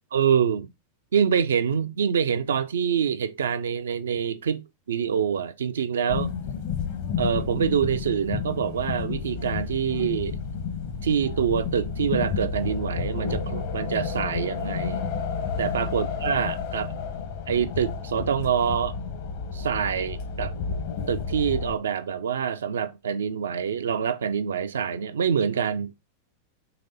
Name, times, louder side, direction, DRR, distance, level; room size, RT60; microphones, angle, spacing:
voice 1, 0.1-0.7 1.1-4.6 4.9-6.3 7.2-10.4 11.0-15.0 15.6-16.9 17.5-19.0 19.5-20.5 21.1-25.9, right 7 dB, 65° right, 0.4 m, -25 dB
sound 1, 6.1-21.7, left 6 dB, 50° left, 0.8 m, -31 dB
4.1 x 3.1 x 3.9 m
figure-of-eight pair, 90°, 0 cm